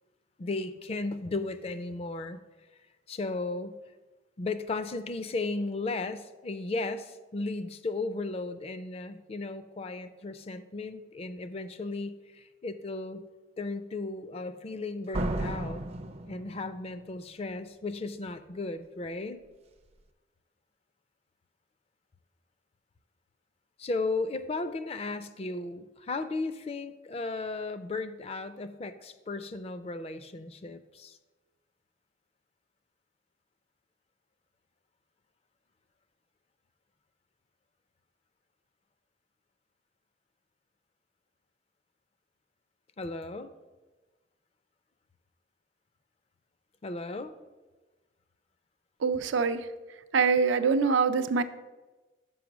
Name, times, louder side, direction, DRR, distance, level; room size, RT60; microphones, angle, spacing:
voice 1, 0.4-2.4 3.1-3.8 4.4-13.2 13.6-15.8 16.3-19.4 23.8-31.2 43.0-43.5 46.8-47.3, left 3 dB, 30° left, 11 dB, 0.4 m, -35 dB
Slam, 15.1-17.0, right 1 dB, 35° right, 0.4 m, -33 dB
voice 2, 49.0-51.4, right 5 dB, 85° right, 9 dB, 0.5 m, -25 dB
6.3 x 5.2 x 6.0 m, 1.2 s
head